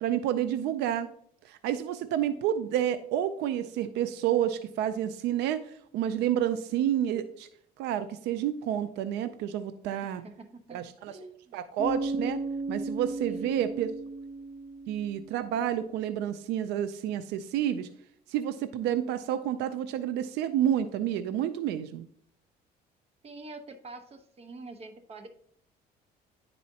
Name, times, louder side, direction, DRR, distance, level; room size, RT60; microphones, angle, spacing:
voice 1, 0.0-1.1 1.4-7.5 7.8-10.2 10.7-11.2 11.5-12.4 12.7-13.9 14.9-17.9 18.3-22.0, right 10 dB, 85° right, 12 dB, 0.4 m, -29 dB
voice 2, 10.0-11.6 13.2-13.8 23.2-25.3, right 3 dB, 35° right, 7 dB, 1.0 m, -46 dB
Bass guitar, 11.8-15.6, right 2 dB, 65° right, 2.5 m, -35 dB
10.0 x 4.2 x 2.8 m, 0.66 s
cardioid pair, 110°, 17 cm